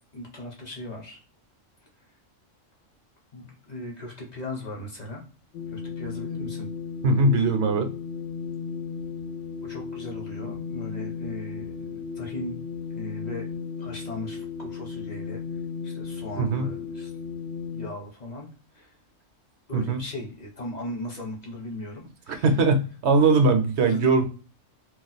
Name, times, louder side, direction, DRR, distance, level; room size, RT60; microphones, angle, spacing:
voice 1, 0.1-1.2 3.3-5.2 5.7-6.7 9.6-12.6 12.9-13.5 13.8-15.4 15.8-17.1 17.7-18.5 18.7-18.9 19.7-22.5 23.8-24.0, left 1 dB, 40° left, 0 dB, 0.9 m, -38 dB
sound 1, 5.5-17.9, left 5 dB, 70° left, 0.9 m, -35 dB
voice 2, 7.0-7.9 16.4-16.7 19.7-20.0 22.3-24.3, right 3 dB, 65° right, 7 dB, 0.8 m, -21 dB
2.4 x 2.3 x 4.0 m, 0.37 s
omnidirectional pair, 1.3 m